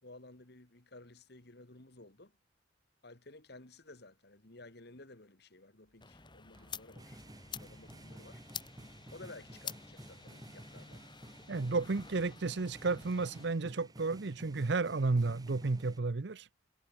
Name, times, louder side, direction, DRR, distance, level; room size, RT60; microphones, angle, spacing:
voice 1, 0.0-2.3 3.0-8.4 9.1-11.0, left 2 dB, 60° left, 2.3 m, -54 dB
sound 1, 6.0-13.5, left 6 dB, 25° left, 2.7 m, -49 dB
sound 2, 6.5-16.0, right 1 dB, 20° right, 4.0 m, -52 dB
voice 2, 11.5-16.5, right 3 dB, 60° right, 0.7 m, -32 dB
head